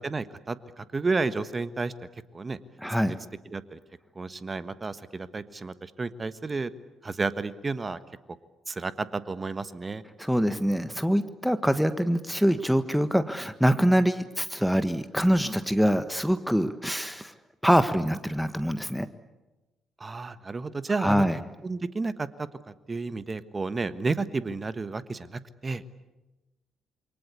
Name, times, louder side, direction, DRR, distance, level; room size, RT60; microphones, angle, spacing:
voice 1, 0.0-1.9 2.3-2.6 2.9-3.0 3.5-3.8 4.1-6.7 7.0-8.0 8.7-10.0 20.0-21.2 21.6-22.5 22.9-25.8, right 3 dB, 30° right, 14 dB, 1.4 m, -31 dB
voice 2, 2.8-3.1 10.2-17.3 17.6-19.1 21.0-21.4, equal, ahead, 11 dB, 1.5 m, -24 dB
28.0 x 23.5 x 8.4 m, 1.1 s
hypercardioid pair, 45°, 0 cm